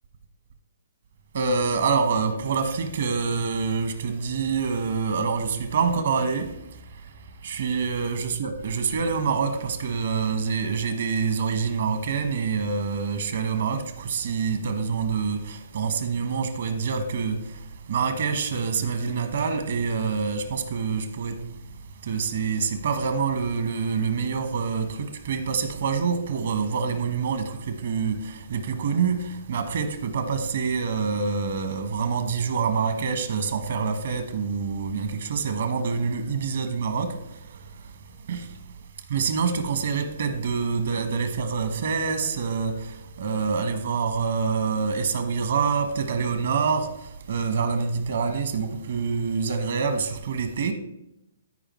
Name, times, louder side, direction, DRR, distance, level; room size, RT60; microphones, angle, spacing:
voice 1, 1.3-6.5 7.5-17.4 17.9-21.3 22.1-28.2 28.5-29.2 29.5-37.1 38.3-38.4 39.1-42.7 43.2-46.9 47.3-50.7, right 5 dB, 60° right, 1.1 m, -26 dB
13.5 x 5.1 x 3.1 m
figure-of-eight pair, 125°, 0 cm